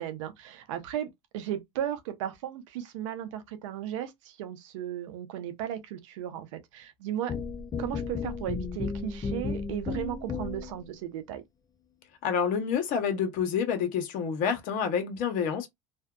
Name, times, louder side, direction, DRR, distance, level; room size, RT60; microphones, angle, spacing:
voice 1, 0.0-7.3 7.8-11.4, right 11 dB, 85° right, 0.6 m, -35 dB
sound 1, 7.3-10.8, left 4 dB, 25° left, 0.4 m, -34 dB
voice 2, 12.2-15.7, left 7 dB, 60° left, 0.9 m, -28 dB
2.6 x 2.2 x 2.2 m
supercardioid pair, 95°, 16 cm